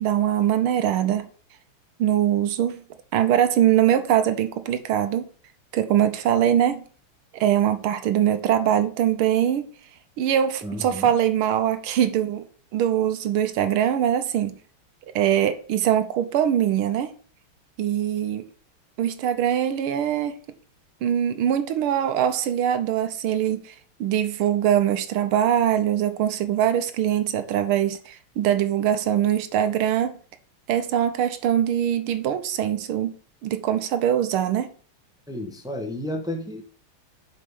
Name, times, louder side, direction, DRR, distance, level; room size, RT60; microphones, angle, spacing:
voice 1, 0.0-1.3 2.0-2.8 3.1-5.3 5.7-6.8 7.3-9.6 10.2-12.5 12.7-14.5 15.1-17.1 17.8-18.4 19.0-20.4 21.0-23.7 24.0-30.1 30.7-33.1 33.4-34.7, right 10 dB, 85° right, 1.6 m, -22 dB
voice 2, 10.6-11.1 35.3-36.6, left 1 dB, 5° right, 0.3 m, -32 dB
7.5 x 4.4 x 5.3 m
omnidirectional pair, 2.3 m